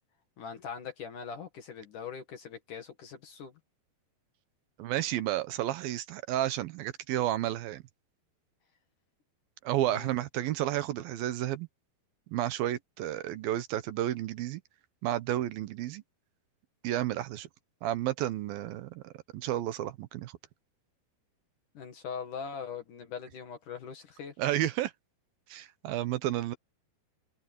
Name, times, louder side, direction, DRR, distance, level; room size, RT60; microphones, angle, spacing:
voice 1, 0.4-3.5 9.8-10.3 21.7-24.3, left 6 dB, 60° left, 3.1 m, -41 dB
voice 2, 4.8-7.8 9.6-11.7 12.3-14.6 15.0-16.0 16.8-17.5 17.8-20.3 24.4-24.9 25.5-26.5, right 13 dB, 70° right, 2.6 m, -31 dB
omnidirectional pair, 4.6 m